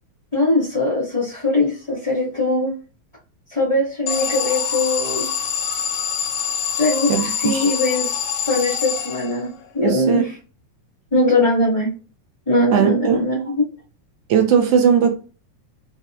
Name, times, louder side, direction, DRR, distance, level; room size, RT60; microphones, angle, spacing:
voice 1, 0.3-2.7 3.5-5.3 6.8-8.2 8.4-10.3 11.1-11.9 12.5-13.6, left 2 dB, 15° left, 1.2 m, -21 dB
Alarm, 4.1-9.6, left 7 dB, 70° left, 1.4 m, -25 dB
voice 2, 7.1-7.6 9.8-10.2 12.7-13.2 14.3-15.1, right 7 dB, 70° right, 1.5 m, -18 dB
4.7 x 4.4 x 2.5 m
omnidirectional pair, 3.4 m